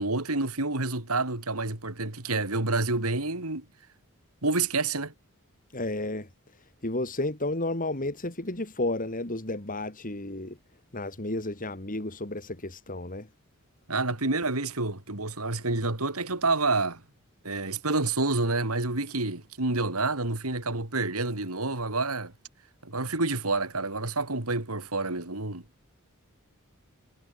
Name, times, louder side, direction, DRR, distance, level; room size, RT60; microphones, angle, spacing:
voice 1, 0.0-3.6 4.4-5.1 13.9-17.0 17.4-22.3 22.8-25.6, right 3 dB, 75° right, 3.5 m, -28 dB
voice 2, 5.7-6.3 6.8-10.6 10.9-13.3, left 2 dB, 40° left, 3.3 m, -32 dB
head